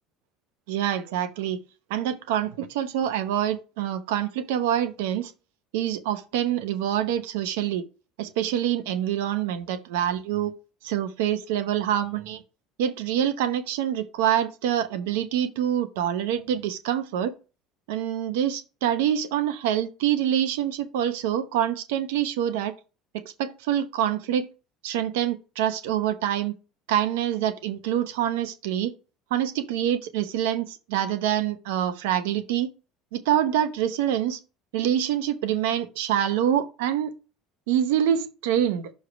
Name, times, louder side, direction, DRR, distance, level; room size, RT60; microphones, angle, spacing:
voice 1, 0.7-1.6 1.9-5.3 5.7-7.8 8.2-10.5 10.8-12.4 12.8-17.3 17.9-22.7 23.1-24.5 24.8-26.6 26.9-28.9 29.3-32.7 33.1-34.4 34.7-37.1 37.7-38.9, right 10 dB, 80° right, 0.9 m, -26 dB
6.4 x 3.3 x 5.9 m
supercardioid pair, 85°, 0 cm